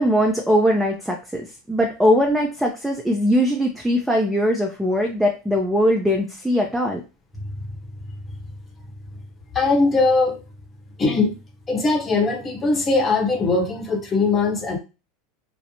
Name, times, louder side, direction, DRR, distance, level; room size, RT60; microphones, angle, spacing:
voice 1, 0.0-7.0, equal, 5° right, 0.5 m, -20 dB
voice 2, 9.5-10.4 11.0-11.4 11.7-14.8, left 3 dB, 25° left, 0.9 m, -20 dB
2.6 x 2.0 x 2.9 m
hypercardioid pair, 100°, 0 cm